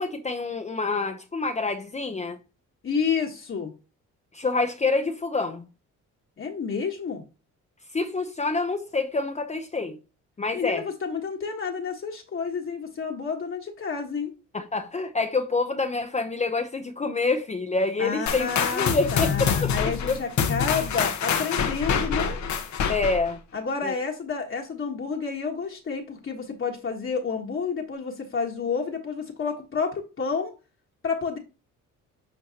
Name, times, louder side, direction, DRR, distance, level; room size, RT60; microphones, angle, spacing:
voice 1, 0.0-2.4 4.3-5.6 7.9-10.0 10.4-10.9 14.5-19.7 20.1-20.2 22.9-23.4 23.8-23.9, left 3 dB, 25° left, 0.7 m, -27 dB
voice 2, 2.8-3.7 6.4-7.2 10.5-14.3 18.0-22.4 23.5-30.5 31.0-31.4, left 5 dB, 45° left, 1.4 m, -30 dB
sound 1, 18.3-23.3, left 6 dB, 70° left, 1.1 m, -26 dB
8.8 x 4.5 x 2.9 m
cardioid pair, 90°, 30 cm